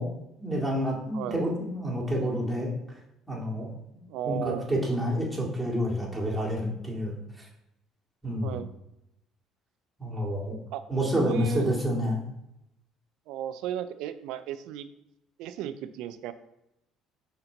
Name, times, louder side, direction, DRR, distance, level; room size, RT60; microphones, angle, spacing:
voice 1, 0.0-2.7 3.3-3.7 4.2-7.2 8.2-8.6 10.0-10.6 10.9-12.2, equal, 10° right, -4 dB, 2.1 m, -29 dB
voice 2, 4.1-4.7 8.4-8.7 10.7-10.8 11.2-11.7 13.3-14.9 15.4-16.3, right 11 dB, 80° right, 12 dB, 0.4 m, -34 dB
5.8 x 4.3 x 3.8 m, 0.85 s
cardioid pair, 95°, 0 cm